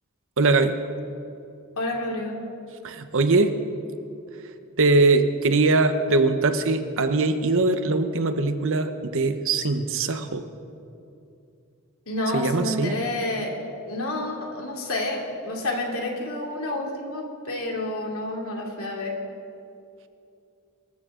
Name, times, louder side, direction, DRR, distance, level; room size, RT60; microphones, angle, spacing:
voice 1, 0.4-0.8 2.8-3.5 4.8-10.4 12.3-13.0, right 3 dB, 60° right, 8 dB, 1.0 m, -21 dB
voice 2, 1.7-2.4 12.1-13.5 13.9-19.1, left 1 dB, 65° left, 0 dB, 2.9 m, -29 dB
25.5 x 14.0 x 3.8 m, 2.6 s
head